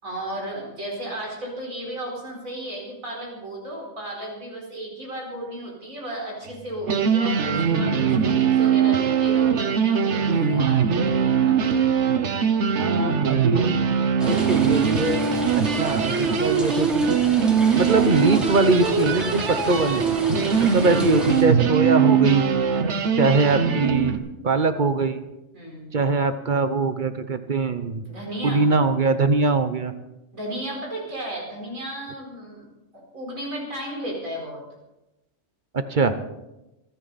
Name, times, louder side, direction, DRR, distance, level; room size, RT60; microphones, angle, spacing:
voice 1, 0.0-11.6 20.5-20.8 25.5-26.0 28.1-28.7 30.3-32.6 32.9-34.6, right 1 dB, 90° right, -2 dB, 5.0 m, -34 dB
sound 1, 6.5-6.6 6.8-24.2, right 7 dB, 60° right, 1.3 m, -21 dB
voice 2, 12.8-13.8 14.3-15.2 15.5-20.2 20.7-22.4 23.1-25.2 25.9-28.0 28.4-29.9 35.7-36.1, right 3 dB, 40° right, 10 dB, 0.9 m, -22 dB
sound 2, 14.2-21.4, equal, ahead, 2.9 m, -33 dB
27.0 x 9.7 x 4.1 m, 0.96 s
omnidirectional pair, 1.4 m